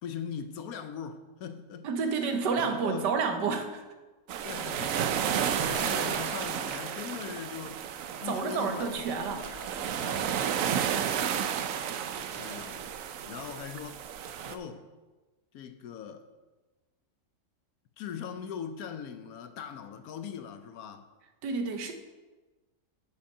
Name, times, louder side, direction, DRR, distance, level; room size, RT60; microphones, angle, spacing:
voice 1, 0.0-3.1 4.4-7.8 8.2-10.4 10.7-11.1 12.4-13.0 13.2-14.0 14.4-14.9 15.5-16.3 18.0-21.1, left 7 dB, 70° left, 9 dB, 1.0 m, -41 dB
voice 2, 1.8-3.8 8.2-9.4 21.4-21.9, right 5 dB, 85° right, 6 dB, 1.5 m, -30 dB
sound 1, 4.3-14.6, right 8 dB, 65° right, 0.9 m, -32 dB
7.8 x 6.4 x 5.4 m, 1.2 s
omnidirectional pair, 1.8 m